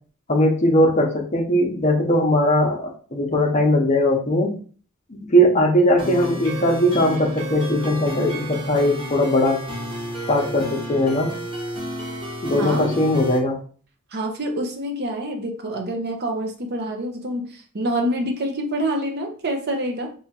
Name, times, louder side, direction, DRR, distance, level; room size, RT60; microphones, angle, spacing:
voice 1, 0.3-4.6 5.1-9.6 10.3-11.3 12.4-13.6, left 1 dB, 30° left, 0 dB, 0.7 m, -19 dB
sound 1, 6.0-13.4, right 1 dB, 25° right, 1.2 m, -32 dB
voice 2, 12.5-12.9 14.1-20.1, right 1 dB, 50° right, 3 dB, 0.6 m, -26 dB
2.9 x 2.3 x 4.2 m, 0.42 s
head